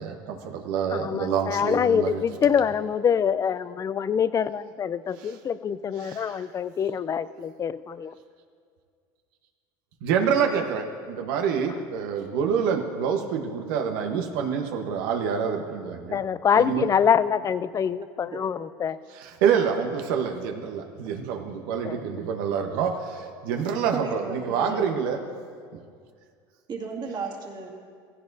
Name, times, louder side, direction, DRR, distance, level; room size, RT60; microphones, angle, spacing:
voice 1, 0.0-2.2 5.2-5.3 6.0-6.4 10.0-16.2 16.5-16.9 19.1-25.2 25.7-25.8, right 7 dB, 80° right, 4 dB, 1.0 m, -27 dB
voice 2, 0.9-8.1 16.1-19.0 21.8-22.0, left 7 dB, 30° left, 16 dB, 0.4 m, -25 dB
voice 3, 23.9-24.9 25.2-25.3 26.7-27.7, right 5 dB, 40° right, -1 dB, 2.2 m, -34 dB
16.0 x 15.5 x 2.7 m, 2.1 s
supercardioid pair, 100°, 11 cm